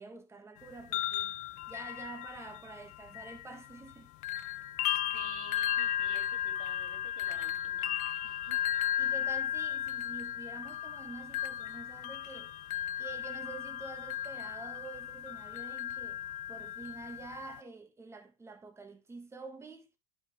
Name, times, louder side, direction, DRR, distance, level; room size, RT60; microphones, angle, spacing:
voice 1, 0.0-1.4 1.7-4.1 5.0-5.2 9.0-12.6 13.0-16.2 16.5-19.9, right 3 dB, 15° right, 1.8 m, -47 dB
sound 1, 0.6-3.9 4.2-17.6, left 11 dB, 45° left, 0.7 m, -35 dB
voice 2, 5.1-8.0 8.2-8.6, right 4 dB, 75° right, 3.0 m, -51 dB
11.0 x 5.4 x 3.5 m
figure-of-eight pair, 80°, 18 cm